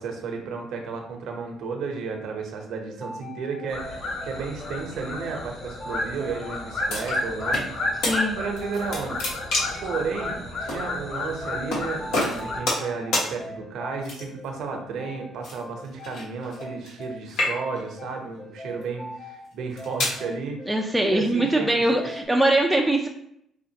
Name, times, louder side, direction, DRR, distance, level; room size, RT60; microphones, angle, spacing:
voice 1, 0.0-22.1, right 5 dB, 70° right, 3 dB, 0.8 m, -33 dB
sound 1, 2.9-22.2, left 2 dB, 35° left, 0.7 m, -41 dB
sound 2, 3.7-12.6, left 2 dB, 65° left, 1.5 m, -32 dB
sound 3, 6.9-7.7 8.0-8.2 8.6-9.9 10.7-10.8 11.7-11.8 12.1-12.9 13.1-13.3 14.0-14.5 15.4-17.0 17.3-17.9 18.6-18.8 19.5-20.2, left 2 dB, 80° left, 1.5 m, -27 dB
voice 2, 8.0-8.4 20.7-23.1, right 1 dB, 5° right, 0 dB, 0.4 m, -22 dB
5.1 x 2.4 x 2.8 m, 0.72 s
cardioid pair, 95°, 0 cm